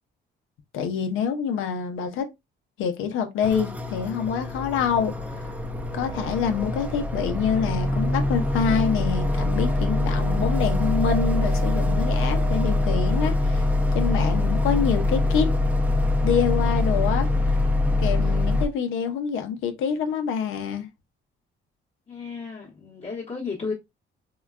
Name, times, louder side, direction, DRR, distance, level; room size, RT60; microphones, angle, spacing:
voice 1, 0.7-2.3 2.8-5.4 5.9-13.7 13.9-15.5 16.2-17.6 18.0-20.9, left 7 dB, 85° left, 0.6 m, -26 dB
sound 1, 3.4-18.7, left 2 dB, 5° right, 0.6 m, -24 dB
voice 2, 22.1-23.7, left 4 dB, 35° left, 1.0 m, -33 dB
3.7 x 2.2 x 2.3 m
cardioid pair, 90°, 20 cm